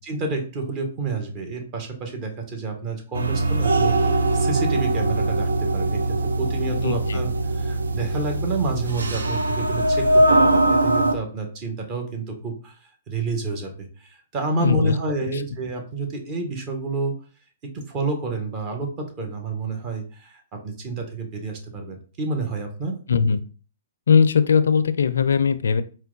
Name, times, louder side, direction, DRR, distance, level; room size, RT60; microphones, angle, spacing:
voice 1, 0.0-17.1 17.7-23.0, right 3 dB, 35° right, 3 dB, 1.2 m, -29 dB
sound 1, 3.1-11.1, right 2 dB, 85° right, 0.5 m, -21 dB
voice 2, 6.8-7.2 14.6-14.9 15.2-15.4 23.1-23.4 24.1-25.8, left 6 dB, 80° left, 12 dB, 0.4 m, -19 dB
4.5 x 2.2 x 3.8 m, 0.38 s
hypercardioid pair, 130°, 0 cm